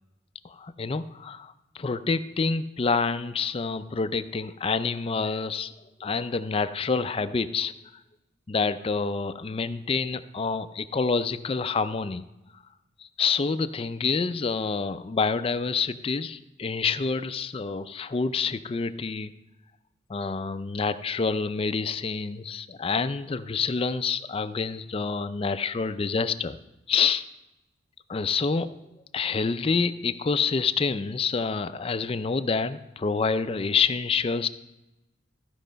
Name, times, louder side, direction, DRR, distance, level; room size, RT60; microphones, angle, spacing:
voice 1, 0.4-5.7 6.0-7.7 8.5-12.2 13.0-19.3 20.1-26.6 26.9-27.2 28.1-28.7 29.1-34.5, left 5 dB, 30° left, 11 dB, 0.4 m, -27 dB
14.0 x 5.4 x 5.1 m, 0.99 s
head